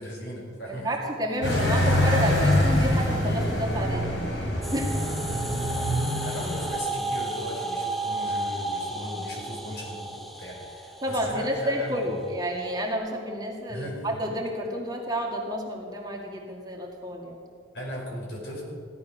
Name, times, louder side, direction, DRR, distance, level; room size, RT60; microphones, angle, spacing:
voice 1, 0.0-0.9 1.4-1.7 6.2-12.3 13.7-14.1 17.7-18.6, equal, 65° left, -2 dB, 5.0 m, -37 dB
voice 2, 0.7-4.1 4.7-4.9 11.0-17.4, equal, 20° right, -1 dB, 2.0 m, -30 dB
sound 1, 1.4-6.7, left 1 dB, 80° left, 3.8 m, -25 dB
sound 2, 4.6-12.9, right 2 dB, ahead, 0.8 m, -33 dB
16.5 x 12.0 x 6.2 m, 2.2 s
head